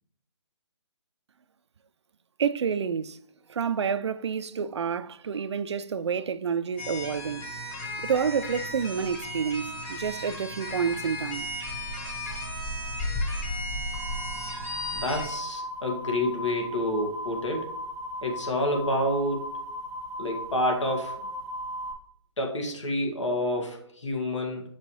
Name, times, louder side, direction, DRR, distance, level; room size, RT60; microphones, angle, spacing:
voice 1, 2.4-3.2 3.5-7.5 8.0-11.5, right 6 dB, 65° right, 0.4 m, -29 dB
sound 1, 6.8-15.3, left 1 dB, 15° left, 1.2 m, -34 dB
sound 2, 13.9-21.9, equal, 60° left, 1.6 m, -37 dB
voice 2, 14.9-17.7 18.2-19.5 20.2-21.2 22.4-24.6, left 1 dB, 80° left, 2.0 m, -28 dB
6.5 x 5.4 x 3.1 m
figure-of-eight pair, 145°, 15 cm